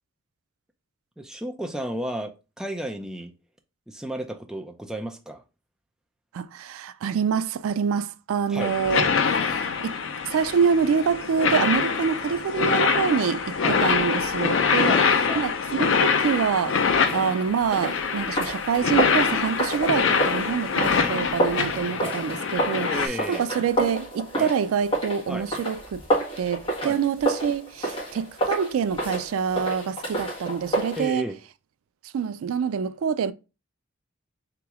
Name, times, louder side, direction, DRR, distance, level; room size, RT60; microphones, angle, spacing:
voice 1, 1.2-3.3 3.9-5.4 8.5-8.8 13.6-13.8 14.8-15.4 16.9-17.1 21.0-21.1 22.0-22.2 22.8-23.5 24.3-24.5 25.3-25.5 26.8-27.0 31.0-31.4, right 1 dB, 5° right, 0.4 m, -33 dB
voice 2, 6.3-10.0 10.2-14.9 15.4-16.8 17.1-26.0 26.4-31.3 32.0-33.3, right 6 dB, 85° right, 0.3 m, -26 dB
sound 1, 8.6-23.1, left 5 dB, 60° left, 0.5 m, -24 dB
sound 2, 17.0-31.0, right 1 dB, 25° left, 1.9 m, -30 dB
4.0 x 3.0 x 3.4 m
head